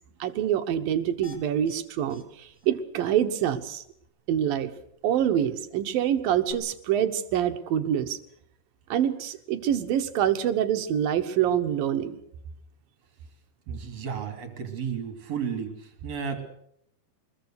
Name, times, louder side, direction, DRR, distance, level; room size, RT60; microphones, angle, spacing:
voice 1, 0.2-3.8 4.3-4.7 5.0-8.2 8.9-12.2, right 10 dB, 65° right, 8 dB, 2.7 m, -26 dB
sound 1, 1.2-1.8 2.1-2.2 2.5-2.7 3.0-3.1 6.5-6.6, left 6 dB, 55° left, 5.0 m, -48 dB
voice 2, 13.7-15.8 16.0-16.4, right 7 dB, 45° right, 6 dB, 3.6 m, -33 dB
24.0 x 21.0 x 6.6 m, 0.72 s
omnidirectional pair, 4.8 m